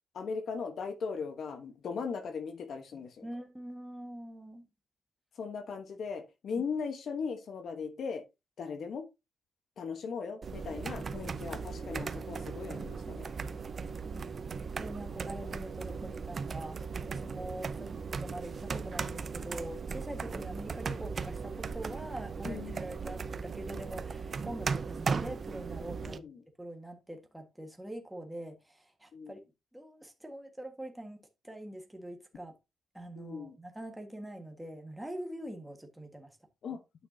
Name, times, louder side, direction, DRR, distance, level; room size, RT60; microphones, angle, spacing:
voice 1, 0.1-3.3 5.4-8.2 8.6-9.1 9.8-13.3 22.4-22.8 26.0-26.4 29.1-29.3 33.2-33.6 36.6-36.8, left 5 dB, 65° left, 1.2 m, -38 dB
voice 2, 3.2-4.7 14.1-14.3 14.8-16.8 17.0-17.9 18.2-26.2 26.6-29.4 29.7-31.2 31.4-32.5 32.9-36.4, right 1 dB, 5° right, 1.6 m, -44 dB
sound 1, 10.4-26.2, right 5 dB, 45° right, 0.6 m, -37 dB
9.2 x 5.9 x 2.8 m
cardioid pair, 95°, 0 cm